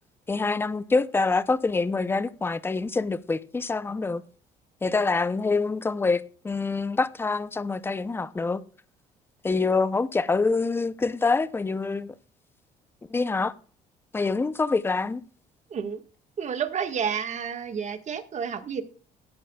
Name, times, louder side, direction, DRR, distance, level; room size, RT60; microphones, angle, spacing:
voice 1, 0.3-4.2 4.8-8.6 9.4-12.1 13.1-13.5 14.1-15.2, left 3 dB, 15° left, 0.5 m, -26 dB
voice 2, 15.7-16.0 16.4-18.8, right 7 dB, 45° right, 1.5 m, -30 dB
19.5 x 8.7 x 2.3 m
cardioid pair, 110°, 17 cm